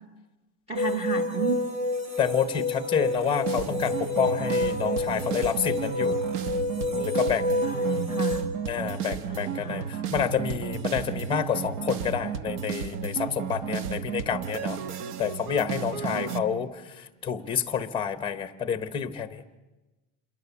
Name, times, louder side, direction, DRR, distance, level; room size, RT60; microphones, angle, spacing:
voice 1, 0.7-1.6 7.5-8.4 9.3-9.8 16.1-16.4, right 6 dB, 15° right, 4 dB, 1.1 m, -32 dB
sound 1, 0.8-8.4, left 2 dB, 35° right, 2.5 m, -29 dB
voice 2, 2.2-6.2 6.9-7.5 8.7-14.8 15.2-19.4, left 7 dB, 10° left, 11 dB, 1.0 m, -29 dB
sound 2, 3.5-16.4, right 8 dB, 75° right, 1.2 m, -33 dB
27.5 x 22.5 x 7.1 m, 1.1 s
cardioid pair, 175°, 46 cm